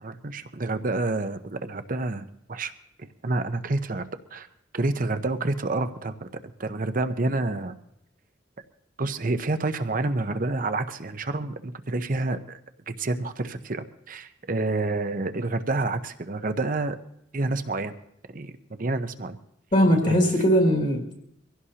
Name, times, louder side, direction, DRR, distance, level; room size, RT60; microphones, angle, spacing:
voice 1, 0.0-2.7 3.0-4.5 4.7-6.3 6.6-7.7 9.0-12.6 12.9-17.0 17.3-17.9 18.3-19.4 20.0-20.2, right 2 dB, 45° right, 10 dB, 0.8 m, -28 dB
voice 2, 19.7-21.2, equal, 45° left, 1 dB, 2.2 m, -20 dB
24.0 x 16.0 x 2.9 m, 0.77 s
head